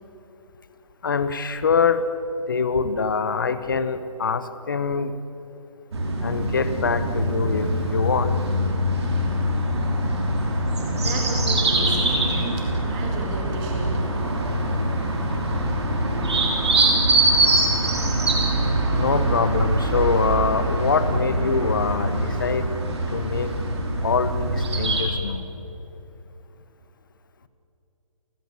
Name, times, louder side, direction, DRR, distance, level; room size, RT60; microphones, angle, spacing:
voice 1, 1.0-2.1 2.5-5.1 6.2-8.4 18.9-22.7 23.1-23.6 24.0-25.5, left 5 dB, 35° left, 12 dB, 1.0 m, -24 dB
sound 1, 5.9-25.0, right 1 dB, 50° right, 4.5 m, -23 dB
voice 2, 11.0-14.1, right 2 dB, 10° right, 1 dB, 2.1 m, -34 dB
29.5 x 15.5 x 8.2 m, 3.0 s
hypercardioid pair, 180°, 18 cm